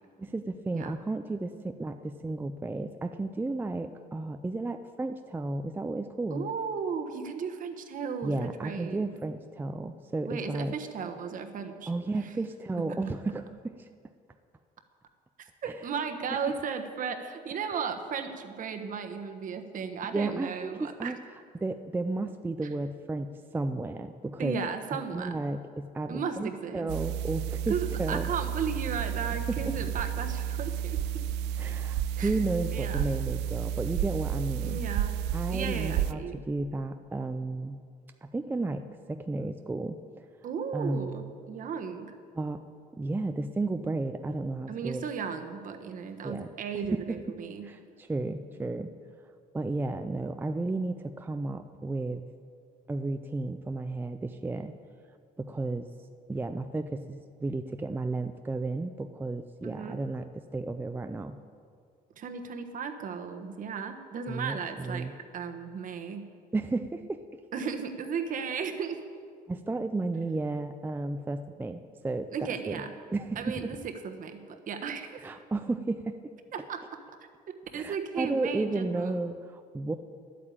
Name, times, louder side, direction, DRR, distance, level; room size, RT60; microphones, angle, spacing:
voice 1, 0.2-6.4 8.2-10.7 11.9-13.9 15.6-15.9 16.3-16.4 20.1-21.2 21.5-24.6 24.9-28.3 29.5-29.6 31.6-34.8 35.3-37.8 38.2-40.2 40.7-41.3 42.3-42.6 42.9-45.0 46.2-46.5 46.8-47.2 47.6-48.9 49.5-52.3 52.9-54.7 55.4-55.9 56.3-61.4 64.3-65.1 66.5-67.4 69.5-72.3 72.7-72.8 73.1-73.8 75.2-76.2 77.7-79.9, right 2 dB, 10° right, 7 dB, 0.4 m, -33 dB
voice 2, 6.3-9.0 10.2-12.2 15.4-21.1 24.4-25.4 26.1-26.9 27.7-31.2 32.2-32.3 32.7-33.1 34.6-35.2 35.5-36.4 40.4-42.1 44.7-47.7 59.6-60.0 62.2-65.1 65.3-66.3 67.5-69.0 72.3-72.9 73.4-75.2 76.5-77.0 77.5-79.2, right 6 dB, 50° right, 6 dB, 1.2 m, -35 dB
sound 1, 26.9-36.1, right 10 dB, 85° right, 0.4 m, -31 dB
11.0 x 8.6 x 8.6 m, 2.2 s
cardioid pair, 110°, 17 cm